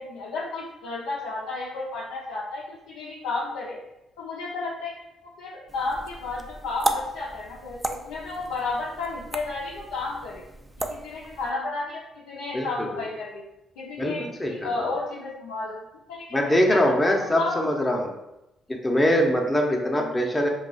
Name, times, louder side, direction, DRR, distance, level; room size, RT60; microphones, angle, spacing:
voice 1, 0.0-3.8 4.2-5.0 5.4-10.4 10.8-12.0 12.3-13.4 13.8-15.8 16.1-16.9 17.4-17.6 20.0-20.1, left 3 dB, 85° left, -6 dB, 0.5 m, -32 dB
sound 1, 5.7-11.5, right 1 dB, 15° right, 0.4 m, -34 dB
voice 2, 12.5-13.0 14.0-14.7 16.3-18.1 18.7-20.5, equal, 15° left, 0 dB, 0.7 m, -23 dB
2.7 x 2.3 x 3.9 m, 0.90 s
hypercardioid pair, 50°, 0 cm